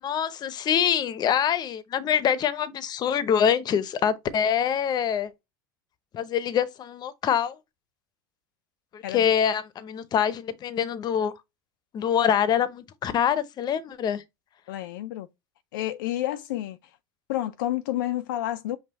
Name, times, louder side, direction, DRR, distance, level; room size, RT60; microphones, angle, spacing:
voice 1, 0.0-5.3 6.1-7.6 8.9-11.3 11.9-14.2, left 8 dB, 40° left, 0.7 m, -25 dB
voice 2, 14.7-15.3 15.7-16.8 17.3-18.8, left 14 dB, 80° left, 0.4 m, -30 dB
5.6 x 2.3 x 4.1 m
hypercardioid pair, 90°, 11 cm